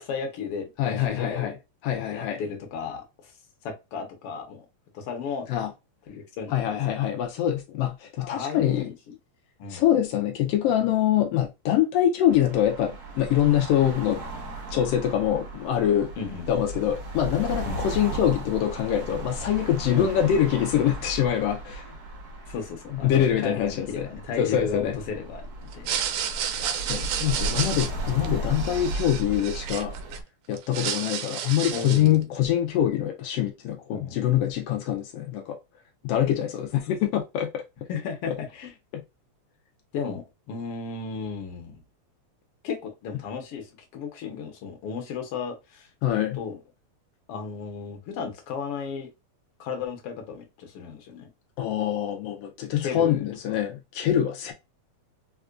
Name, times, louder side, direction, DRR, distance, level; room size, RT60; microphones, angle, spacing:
voice 1, 0.0-1.5 1.9-3.3 3.6-4.7 4.9-5.4 6.1-6.8 8.2-9.1 9.6-9.8 16.2-16.5 17.6-17.8 19.9-20.1 22.5-26.3 31.7-32.3 33.9-34.2 37.9-38.7 39.9-41.8 42.6-46.6 47.3-49.1 49.6-51.3 52.8-53.5, left 5 dB, 65° left, 1.5 m, -34 dB
voice 2, 0.8-1.5 1.8-2.4 5.5-5.7 6.5-8.8 9.7-14.2 14.7-16.1 16.5-21.9 23.0-24.1 24.4-25.0 26.6-29.9 30.5-35.6 36.0-37.6 38.3-38.4 46.0-46.4 51.6-54.5, left 10 dB, 85° left, 1.3 m, -24 dB
sound 1, 12.3-30.2, right 1 dB, 60° right, 1.0 m, -36 dB
sound 2, 25.7-30.2 30.5-32.2, right 9 dB, 80° right, 1.6 m, -31 dB
4.4 x 2.4 x 2.3 m
omnidirectional pair, 3.3 m